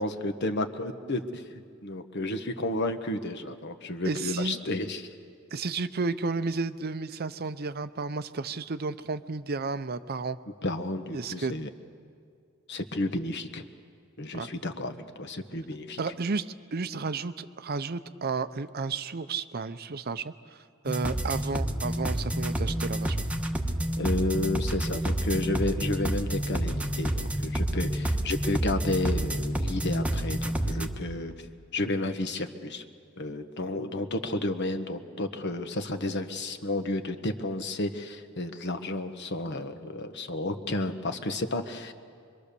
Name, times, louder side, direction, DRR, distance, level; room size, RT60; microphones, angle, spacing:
voice 1, 0.0-1.4 1.8-5.1 10.6-11.7 12.7-13.6 14.2-16.0 24.0-31.3 31.7-32.8 33.2-41.9, left 2 dB, 55° left, 8 dB, 1.2 m, -31 dB
voice 2, 4.0-4.6 5.5-10.4 11.1-11.5 14.3-14.5 16.0-16.5 16.7-20.3 20.8-23.2, right 4 dB, 50° right, 12 dB, 0.6 m, -32 dB
sound 1, 20.9-30.9, right 1 dB, 5° right, 1.1 m, -29 dB
25.0 x 23.5 x 6.8 m, 2.2 s
head